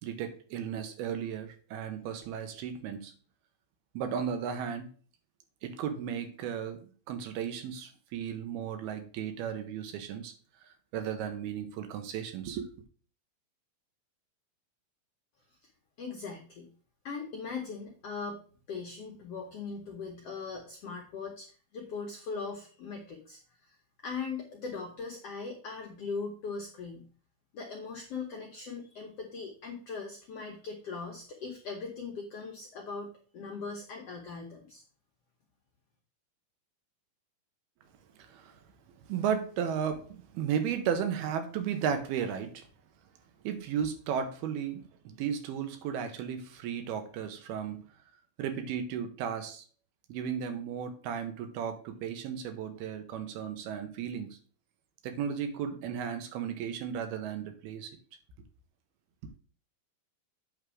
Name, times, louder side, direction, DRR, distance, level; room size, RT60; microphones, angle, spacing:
voice 1, 0.0-3.1 3.9-4.9 5.6-10.3 10.9-12.7 38.2-38.6 39.1-42.7 43.4-47.8 48.4-49.6 50.1-54.4 55.0-58.0, right 8 dB, 90° right, 8 dB, 2.9 m, -35 dB
voice 2, 16.0-16.7 17.0-18.4 18.7-23.8 24.0-27.1 27.5-33.1 33.3-34.8, left 4 dB, 75° left, 1 dB, 1.4 m, -40 dB
8.7 x 3.4 x 6.2 m, 0.42 s
omnidirectional pair, 4.3 m